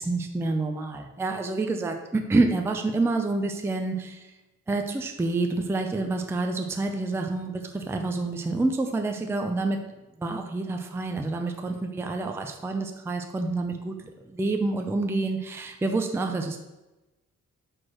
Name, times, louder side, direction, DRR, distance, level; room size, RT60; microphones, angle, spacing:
voice 1, 0.0-4.3 4.7-9.8 10.2-16.6, right 3 dB, 10° right, 5 dB, 0.4 m, -28 dB
4.7 x 4.5 x 6.0 m, 1.0 s
wide cardioid pair, 150°, 30 cm